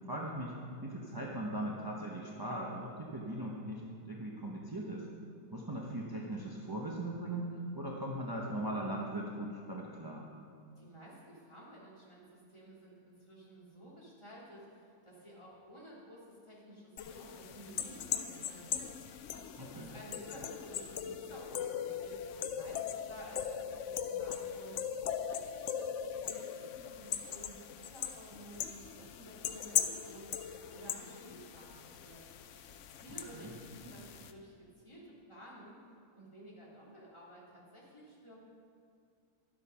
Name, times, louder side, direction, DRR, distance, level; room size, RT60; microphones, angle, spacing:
voice 1, 0.1-0.5 0.8-5.1 5.5-10.3 19.6-19.9 33.3-33.6, right 1 dB, 20° right, -3 dB, 0.6 m, -39 dB
voice 2, 10.7-30.3 30.7-32.2 32.9-35.8 36.1-38.4, right 1 dB, 15° left, -5 dB, 2.7 m, -53 dB
sound 1, 17.0-34.3, left 9 dB, 80° left, 0.6 m, -39 dB
12.0 x 7.9 x 5.7 m, 2.4 s
omnidirectional pair, 1.9 m